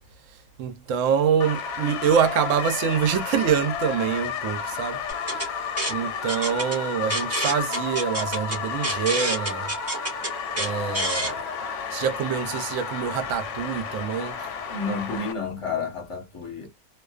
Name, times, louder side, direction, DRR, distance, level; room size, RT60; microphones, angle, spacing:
voice 1, 0.6-5.0 5.9-9.7 10.5-11.4 11.9-14.5, right 8 dB, 70° right, 0.8 m, -25 dB
sound 1, 1.4-15.3, left 6 dB, 65° left, 0.8 m, -32 dB
sound 2, 5.1-11.3, right 1 dB, 15° right, 0.5 m, -30 dB
voice 2, 14.7-16.7, left 4 dB, 30° left, 0.7 m, -30 dB
2.3 x 2.3 x 2.3 m
omnidirectional pair, 1.6 m